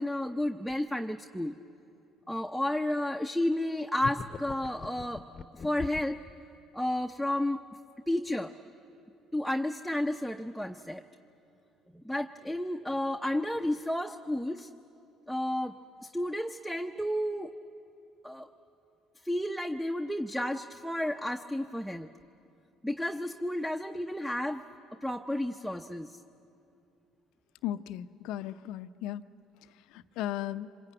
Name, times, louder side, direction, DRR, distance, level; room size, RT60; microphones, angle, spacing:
voice 1, 0.0-1.6 2.3-5.2 5.5-6.2 6.7-7.6 8.1-8.5 9.3-11.0 11.9-14.7 15.3-17.5 18.2-18.5 19.2-22.1 22.8-24.6 25.0-26.2, left 1 dB, ahead, 7 dB, 0.8 m, -32 dB
sound 1, 4.0-6.2, left 5 dB, 40° left, 0.8 m, -40 dB
voice 2, 27.6-29.2 29.9-30.7, left 12 dB, 75° left, 13 dB, 0.6 m, -36 dB
26.0 x 22.0 x 9.1 m, 2.7 s
supercardioid pair, 70°, 0 cm